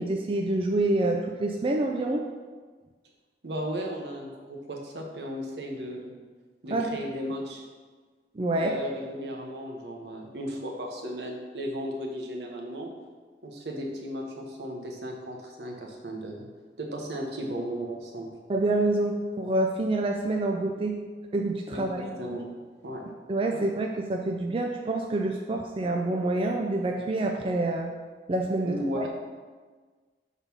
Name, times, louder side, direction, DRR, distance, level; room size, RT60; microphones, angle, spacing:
voice 1, 0.0-2.2 6.7-7.0 8.4-8.7 18.5-21.0 21.3-22.1 23.3-27.9 28.3-29.1, right 2 dB, 30° right, 2 dB, 0.4 m, -27 dB
voice 2, 3.4-6.1 6.6-7.6 8.5-12.9 13.4-16.5 16.8-18.3 21.7-22.5 22.8-23.0 23.5-23.6 28.6-29.1, equal, 75° right, 0 dB, 1.1 m, -35 dB
6.0 x 4.1 x 5.4 m, 1.4 s
head